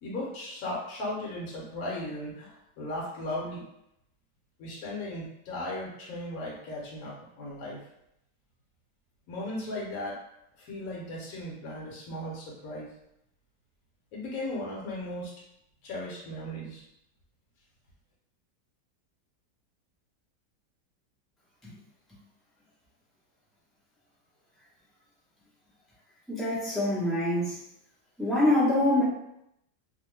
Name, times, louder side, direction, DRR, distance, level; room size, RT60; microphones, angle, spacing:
voice 1, 0.0-3.6 4.6-7.8 9.3-10.2 10.6-12.9 14.1-15.3 15.8-16.8, left 1 dB, 65° left, -5 dB, 1.1 m, -36 dB
voice 2, 26.3-27.6 28.2-29.0, left 1 dB, ahead, -9 dB, 0.3 m, -25 dB
2.8 x 2.1 x 3.1 m, 0.80 s
omnidirectional pair, 1.8 m